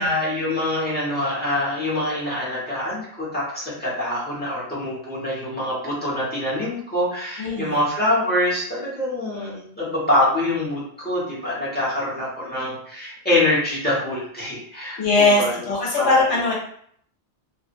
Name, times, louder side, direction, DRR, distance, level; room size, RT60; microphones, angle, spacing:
voice 1, 0.0-15.6 16.0-16.2, left 1 dB, 10° left, -8 dB, 1.3 m, -25 dB
voice 2, 7.4-7.8 15.0-16.5, left 3 dB, 85° left, -3 dB, 1.3 m, -20 dB
2.7 x 2.6 x 2.6 m, 0.62 s
omnidirectional pair, 1.2 m